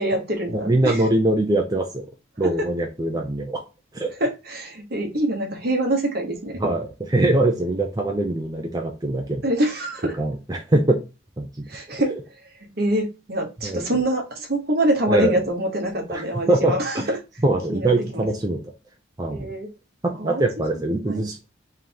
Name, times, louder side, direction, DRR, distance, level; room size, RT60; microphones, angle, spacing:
voice 1, 0.0-1.1 2.6-2.7 4.2-6.6 9.4-10.2 11.7-12.1 12.4-17.2 17.7-18.2 19.3-19.7 20.2-20.4 20.7-21.2, right 1 dB, 50° right, 2 dB, 1.1 m, -25 dB
voice 2, 0.5-2.1 2.4-3.6 3.9-4.1 6.6-9.4 10.2-11.0 11.4-11.7 13.6-13.8 15.1-15.4 16.1-16.2 16.5-17.1 17.4-18.6 19.2-19.5 20.0-21.5, right 2 dB, 20° right, 2 dB, 0.5 m, -22 dB
3.8 x 3.3 x 2.8 m, 0.28 s
head